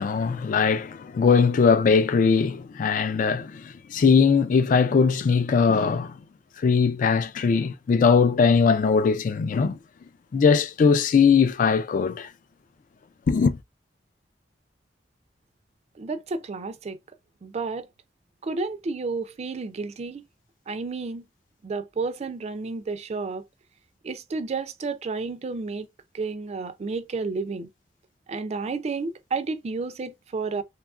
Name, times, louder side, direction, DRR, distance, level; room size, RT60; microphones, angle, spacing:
voice 1, 0.0-3.6 3.9-6.1 6.6-9.8 10.3-12.3 13.3-13.6, left 5 dB, 50° left, 0.3 m, -20 dB
voice 2, 16.0-17.0 17.4-17.9 18.4-20.2 20.7-21.2 21.6-23.4 24.0-25.9 26.1-27.7 28.3-30.6, right 4 dB, 40° right, 0.3 m, -31 dB
2.9 x 2.3 x 2.4 m
head